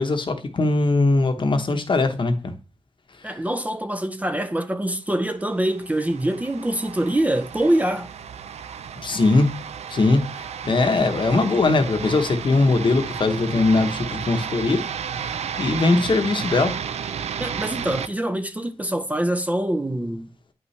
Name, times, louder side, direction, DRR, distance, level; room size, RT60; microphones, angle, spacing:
voice 1, 0.0-2.5 9.0-9.5 9.9-14.8 15.1-16.8, left 3 dB, 50° left, 0.9 m, -21 dB
voice 2, 3.2-8.1 17.4-20.3, right 1 dB, 15° right, 0.5 m, -24 dB
sound 1, 5.5-18.1, right 7 dB, 85° right, 0.4 m, -33 dB
9.1 x 5.6 x 3.2 m
wide cardioid pair, 90°, 11 cm